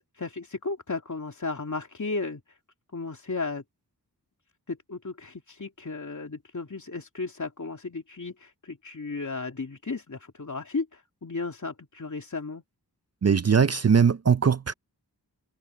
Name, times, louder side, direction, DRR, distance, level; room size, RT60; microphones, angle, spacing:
voice 1, 0.1-2.6 2.9-3.6 4.7-12.6, left 3 dB, 50° left, 2.7 m, -34 dB
voice 2, 13.2-14.7, right 6 dB, 40° right, 0.6 m, -20 dB
wide cardioid pair, 65°, 39 cm